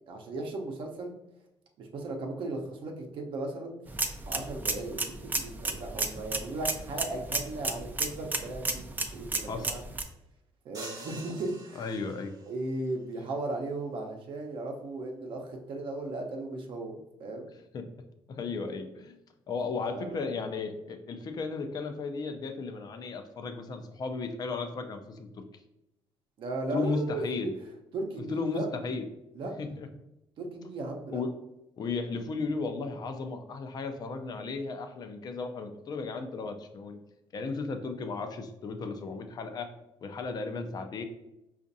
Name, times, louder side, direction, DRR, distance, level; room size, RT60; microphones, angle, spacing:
voice 1, 0.1-1.1 1.8-4.0 4.3-9.8 10.6-11.8 12.4-17.5 19.8-20.3 26.4-27.2 27.9-28.7 29.3-29.5 30.4-31.2, right 2 dB, 60° right, 2 dB, 0.7 m, -36 dB
sound 1, 3.9-10.0, right 3 dB, 20° right, 0.4 m, -33 dB
sound 2, 10.7-12.5, right 2 dB, 40° right, 1.1 m, -45 dB
voice 2, 11.8-12.3 17.7-17.8 18.3-19.2 19.5-25.4 26.7-27.5 28.3-29.0 29.6-29.9 31.1-31.3 31.8-37.0 37.3-39.7 40.0-41.0, left 4 dB, 45° left, 7 dB, 0.5 m, -35 dB
5.0 x 2.5 x 2.6 m, 0.90 s
cardioid pair, 100°, 10 cm